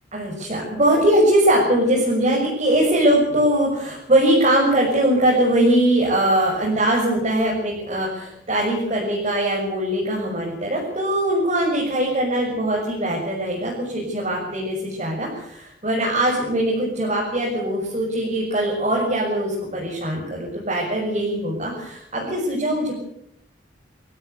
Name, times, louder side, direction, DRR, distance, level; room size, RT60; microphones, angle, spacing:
voice 1, 0.1-23.0, right 1 dB, 35° right, -4 dB, 6.9 m, -21 dB
24.5 x 16.5 x 8.1 m, 0.74 s
head